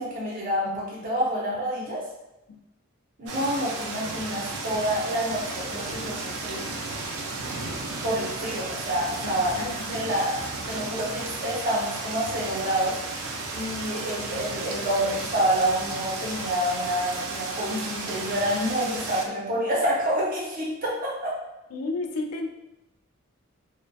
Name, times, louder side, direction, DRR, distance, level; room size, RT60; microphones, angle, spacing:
voice 1, 0.0-2.0 3.2-6.7 7.8-9.6 9.9-10.4 10.7-21.3, equal, 40° right, -5 dB, 0.7 m, -28 dB
sound 1, 3.3-19.2, right 3 dB, 85° right, 0.4 m, -34 dB
voice 2, 9.2-10.0 21.7-22.5, left 3 dB, 85° left, 4 dB, 0.3 m, -32 dB
2.6 x 2.1 x 2.2 m, 0.95 s
head